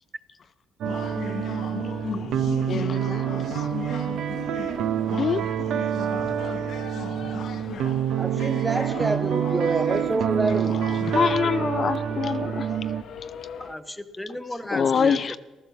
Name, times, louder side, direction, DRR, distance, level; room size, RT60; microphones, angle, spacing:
sound 1, 0.8-13.7, left 7 dB, 70° left, 1.1 m, -37 dB
sound 2, 0.8-13.0, right 9 dB, 80° right, 0.8 m, -27 dB
voice 1, 2.7-3.7 5.2-5.5 6.0-6.1 10.8-12.7 14.7-15.4, left 6 dB, 50° left, 0.5 m, -25 dB
voice 2, 8.2-10.9, right 2 dB, 20° right, 0.6 m, -27 dB
voice 3, 13.6-15.4, left 1 dB, 5° left, 1.2 m, -34 dB
15.0 x 12.5 x 7.1 m
cardioid pair, 90°, 0 cm